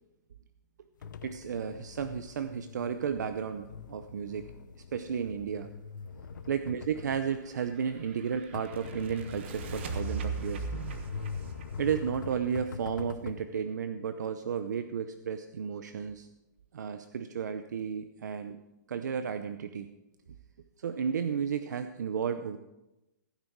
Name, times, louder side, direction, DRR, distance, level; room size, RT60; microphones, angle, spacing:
sound 1, 1.0-13.4, left 5 dB, 85° left, 1.0 m, -43 dB
voice 1, 1.2-4.5 4.9-5.7 6.5-11.0 11.8-16.3 16.7-18.6 18.9-19.9 20.8-22.6, right 7 dB, 65° right, 9 dB, 0.7 m, -33 dB
sound 2, 7.3-13.0, right 5 dB, 35° right, 1.1 m, -40 dB
15.5 x 9.5 x 4.7 m, 0.96 s
hypercardioid pair, 180°, 10 cm